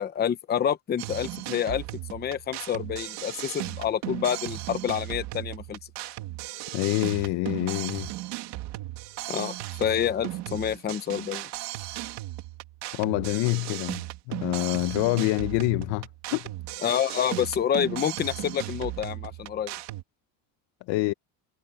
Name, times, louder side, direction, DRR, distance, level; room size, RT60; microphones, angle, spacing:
voice 1, 0.0-1.8 2.1-5.8 9.3-11.5 16.8-19.7, left 9 dB, 20° left, 0.8 m, -28 dB
sound 1, 1.0-20.0, right 17 dB, 70° right, 2.7 m, -36 dB
voice 2, 6.7-8.1 12.9-16.5 20.9-21.1, left 20 dB, 75° left, 1.3 m, -26 dB
cardioid pair, 175°, 44 cm